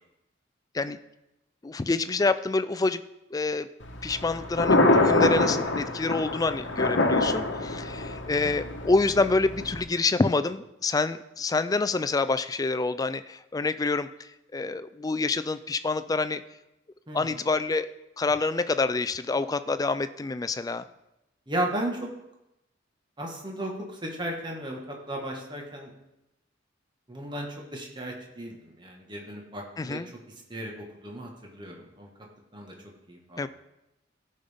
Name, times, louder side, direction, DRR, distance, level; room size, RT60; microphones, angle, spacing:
voice 1, 1.6-3.0 3.3-3.7 4.0-16.4 17.1-17.9 18.2-20.8 29.8-30.1 33.4-33.5, left 3 dB, 20° left, 13 dB, 0.3 m, -27 dB
Thunder, 3.8-9.8, left 2 dB, 65° left, 1.1 m, -25 dB
voice 2, 17.1-17.4 21.5-22.1 23.2-25.9 27.1-30.0 30.5-32.1 32.5-32.7 33.1-33.5, right 1 dB, 25° right, 0 dB, 1.4 m, -35 dB
15.0 x 5.4 x 3.5 m, 0.89 s
head